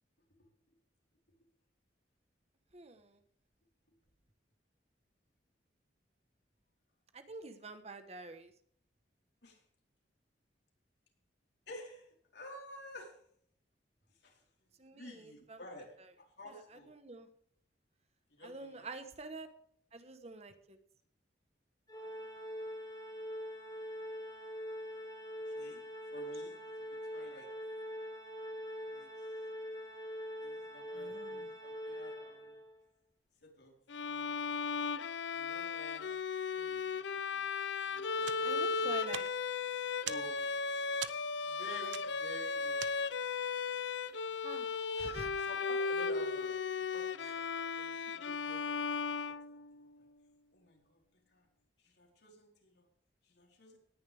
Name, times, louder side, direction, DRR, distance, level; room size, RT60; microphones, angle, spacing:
voice 1, 2.7-3.2 7.1-8.5 14.8-15.6 16.5-17.3 18.4-19.5 19.9-20.8 30.9-31.5 38.4-39.3 44.4-44.7 44.9-45.5 47.2-47.3, right 3 dB, 35° right, 9 dB, 1.3 m, -48 dB
voice 2, 11.7-13.2 14.2-14.4 14.9-16.9 18.3-18.9 25.4-25.8 26.1-26.6 26.9-27.5 28.9-29.1 30.4-32.6 33.4-33.8 34.0-34.5 35.3-36.1 36.5-37.5 37.9-39.0 40.0-40.4 41.4-43.2 45.4-50.1 50.5-51.0 51.3-51.5 51.8-52.9 53.2-53.8, left 1 dB, 70° left, 0 dB, 4.5 m, -52 dB
Organ, 21.9-32.8, equal, 20° left, 2.8 m, -43 dB
Bowed string instrument, 33.9-49.9, left 5 dB, 85° left, 0.7 m, -36 dB
sound 1, 38.2-43.4, right 10 dB, 85° right, 0.9 m, -47 dB
18.5 x 10.5 x 3.6 m, 0.64 s
head